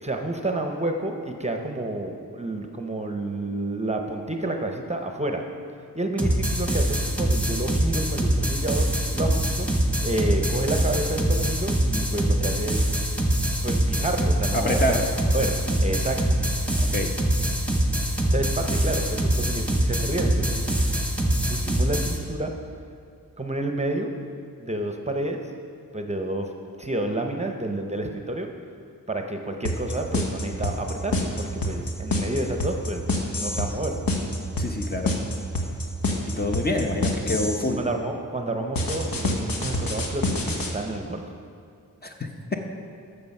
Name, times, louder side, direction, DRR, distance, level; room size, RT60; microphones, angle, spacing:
voice 1, 0.0-5.4 5.9-8.9 9.1-9.7 10.0-12.8 13.6-15.0 15.3-15.5 15.8-16.2 18.3-20.7 21.2-22.5 23.4-24.1 24.6-25.4 25.9-26.5 26.8-28.5 29.1-33.1 33.3-34.0 37.8-41.2, right 1 dB, 20° right, 3 dB, 0.7 m, -29 dB
sound 1, 6.2-22.2, right 1 dB, 5° left, 1.2 m, -24 dB
voice 2, 14.5-15.0 16.8-17.1 34.6-35.1 36.2-37.8 42.0-42.6, left 1 dB, 30° left, 2 dB, 0.8 m, -26 dB
sound 2, 29.7-37.7 38.8-40.7, left 2 dB, 85° left, 1.3 m, -26 dB
13.0 x 6.8 x 5.4 m, 2.4 s
wide cardioid pair, 145°, 34 cm